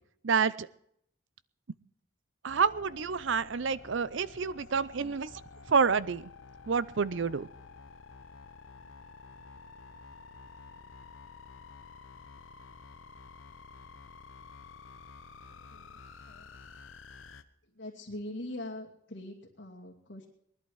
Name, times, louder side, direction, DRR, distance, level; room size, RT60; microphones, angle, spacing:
voice 1, 0.2-0.7 2.4-5.3 5.7-6.3 6.7-7.5, right 5 dB, 70° right, 18 dB, 0.6 m, -28 dB
sound 1, 2.5-17.4, left 4 dB, 80° left, 0.9 m, -51 dB
voice 2, 15.5-16.6 17.7-20.3, left 1 dB, 65° left, -2 dB, 2.5 m, -43 dB
20.0 x 11.5 x 4.8 m, 0.70 s
head